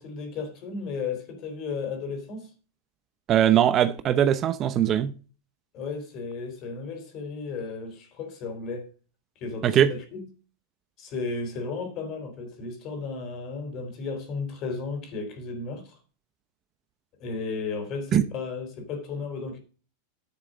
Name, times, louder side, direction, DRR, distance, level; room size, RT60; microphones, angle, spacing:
voice 1, 0.0-2.5 5.7-8.9 9.4-10.3 11.0-16.0 17.2-19.6, left 4 dB, 40° left, 3.7 m, -34 dB
voice 2, 3.3-5.1 9.6-9.9 18.1-18.2, right 10 dB, 30° right, 0.7 m, -21 dB
10.5 x 6.5 x 5.1 m
supercardioid pair, 140°, 0 cm